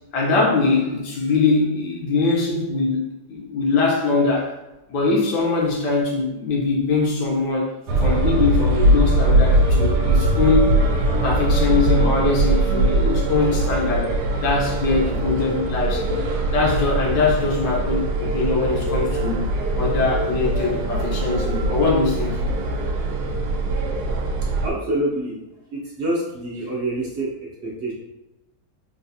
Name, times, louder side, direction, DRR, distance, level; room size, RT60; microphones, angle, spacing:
voice 1, 0.1-4.6 4.9-7.7 8.0-10.8 11.2-16.1 16.5-19.4 19.7-22.4, left 3 dB, 80° left, -2 dB, 1.5 m, -22 dB
sound 1, 7.9-24.7, right 2 dB, 75° right, 1.1 m, -21 dB
voice 2, 24.6-25.4 25.7-27.9, right 1 dB, 55° right, -5 dB, 0.8 m, -27 dB
3.9 x 2.4 x 2.7 m, 0.97 s
omnidirectional pair, 1.8 m